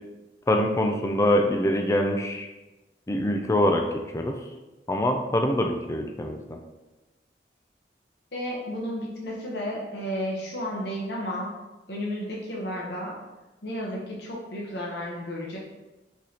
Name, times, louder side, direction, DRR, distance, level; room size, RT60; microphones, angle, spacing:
voice 1, 0.5-2.5 3.1-3.8 4.1-4.4 4.9-6.6, left 1 dB, 15° left, 4 dB, 0.3 m, -24 dB
voice 2, 8.3-11.5 11.9-13.1 13.6-15.6, equal, 70° left, -3 dB, 0.9 m, -32 dB
4.8 x 3.9 x 2.8 m, 1.1 s
head